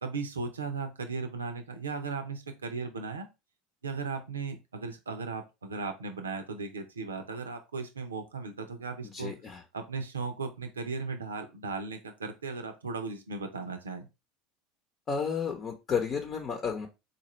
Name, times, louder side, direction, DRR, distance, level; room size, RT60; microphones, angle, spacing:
voice 1, 0.0-3.3 3.8-9.3 9.7-14.1, right 4 dB, 90° right, 7 dB, 0.7 m, -36 dB
voice 2, 9.0-9.6 15.1-16.9, left 6 dB, 35° left, 3 dB, 0.8 m, -32 dB
4.1 x 2.5 x 3.0 m, 0.25 s
hypercardioid pair, 80°, 0 cm